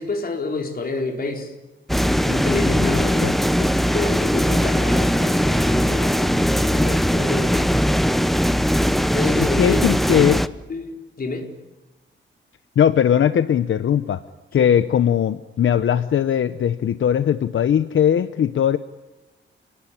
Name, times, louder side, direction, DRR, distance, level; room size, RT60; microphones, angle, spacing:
voice 1, 0.0-1.5 2.2-3.3 3.6-7.7 9.1-9.9 10.7-11.5 14.5-14.7, left 3 dB, 50° left, 3 dB, 4.4 m, -29 dB
sound 1, 1.9-10.5, equal, ahead, 0.9 m, -20 dB
voice 2, 2.8-3.3 9.6-10.4 12.8-14.2 14.5-18.8, left 9 dB, 80° left, 12 dB, 0.9 m, -19 dB
29.0 x 19.5 x 10.0 m, 1.1 s
wide cardioid pair, 135°, 20 cm